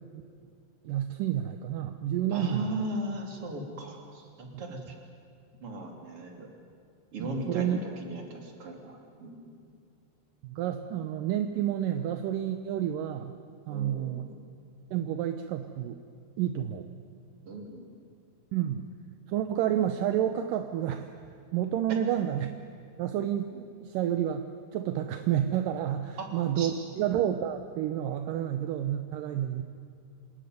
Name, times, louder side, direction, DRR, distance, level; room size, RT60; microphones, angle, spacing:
voice 1, 0.8-2.9 4.5-4.6 7.2-7.8 10.4-13.3 13.7-14.3 14.9-16.0 16.4-16.9 18.5-18.9 19.3-21.1 21.5-22.5 23.0-24.5 24.7-29.6, right 10 dB, 75° right, 7 dB, 2.1 m, -30 dB
voice 2, 2.3-4.9 5.6-6.5 7.1-9.6 13.7-14.3 17.5-17.9 21.9-22.0 26.2-26.7, right 2 dB, 35° right, 2 dB, 3.8 m, -37 dB
27.0 x 20.5 x 9.4 m, 2.4 s
omnidirectional pair, 4.7 m